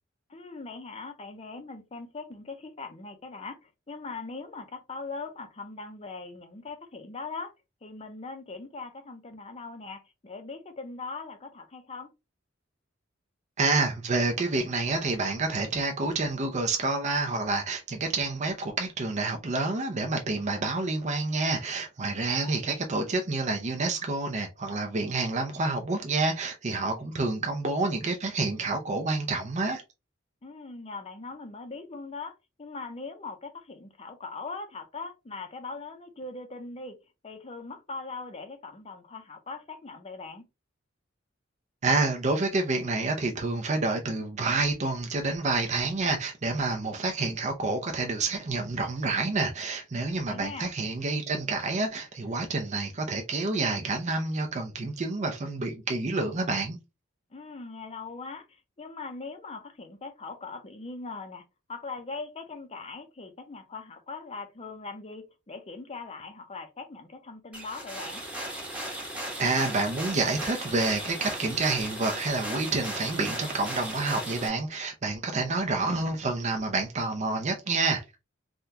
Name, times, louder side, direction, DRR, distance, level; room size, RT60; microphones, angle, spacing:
voice 1, 0.3-3.6 3.9-7.5 7.8-12.1 22.4-22.6 30.4-32.3 32.6-37.0 37.2-40.4 50.3-50.7 57.3-58.4 58.8-61.4 61.7-68.2 75.4-75.5, left 3 dB, 30° left, 0.6 m, -40 dB
voice 2, 13.6-29.8 41.8-56.8 69.4-78.0, right 3 dB, 35° right, 0.5 m, -28 dB
sound 1, 67.5-74.5, right 1 dB, 5° right, 1.1 m, -36 dB
3.6 x 2.2 x 2.7 m
head